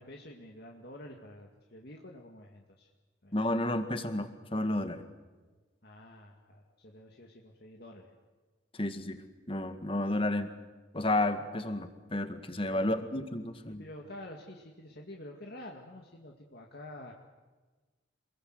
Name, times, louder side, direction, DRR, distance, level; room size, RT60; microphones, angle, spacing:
voice 1, 0.0-2.9 3.2-3.3 5.8-8.2 12.7-12.9 13.6-17.1, left 1 dB, 55° left, 1 dB, 2.3 m, -48 dB
voice 2, 3.3-5.0 8.7-9.2 9.5-10.5 10.9-13.8, left 1 dB, 30° left, 8 dB, 2.0 m, -31 dB
27.5 x 22.0 x 8.1 m, 1.3 s
head